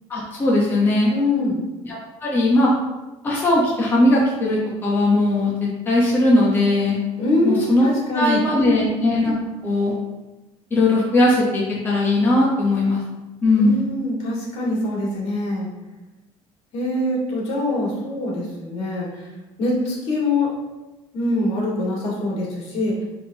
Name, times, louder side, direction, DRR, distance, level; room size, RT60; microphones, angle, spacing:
voice 1, 0.1-1.1 1.8-2.7 3.2-5.5 5.9-7.0 7.4-9.3 9.6-9.9 10.7-13.0 13.4-13.8, left 2 dB, 20° left, -5 dB, 1.1 m, -19 dB
voice 2, 1.1-1.6 7.2-8.8 13.6-15.7 16.7-19.3 19.6-20.5 21.1-22.9, left 2 dB, 60° left, -3 dB, 2.3 m, -24 dB
11.0 x 3.8 x 2.9 m, 1.1 s
cardioid pair, 165°, 11 cm